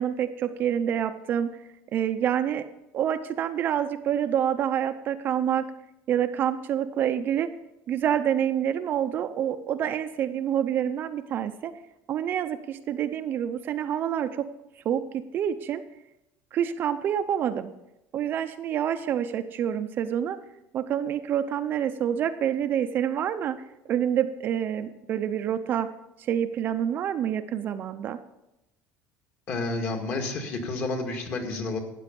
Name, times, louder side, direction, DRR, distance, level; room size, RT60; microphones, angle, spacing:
voice 1, 0.0-1.5 1.9-2.6 2.9-5.6 6.1-7.5 7.9-11.7 12.1-14.5 14.8-15.8 16.5-17.7 18.1-20.4 20.7-23.6 23.9-25.9 26.2-28.2, right 9 dB, 35° right, 8 dB, 0.6 m, -27 dB
voice 2, 29.5-31.8, left 3 dB, 40° left, 3 dB, 2.0 m, -30 dB
13.0 x 8.8 x 5.3 m, 0.90 s
cardioid pair, 165°, 6 cm